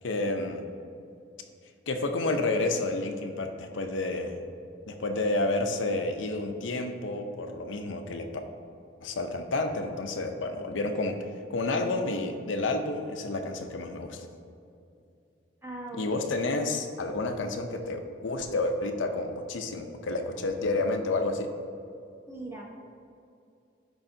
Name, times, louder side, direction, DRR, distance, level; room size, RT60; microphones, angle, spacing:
voice 1, 0.0-0.6 1.9-4.4 4.9-8.3 9.0-11.2 11.5-14.3 16.0-21.5, left 2 dB, 80° left, 5 dB, 0.6 m, -30 dB
voice 2, 15.6-16.1 22.3-22.6, right 2 dB, 15° right, -2 dB, 1.0 m, -39 dB
11.5 x 4.7 x 2.7 m, 2.5 s
head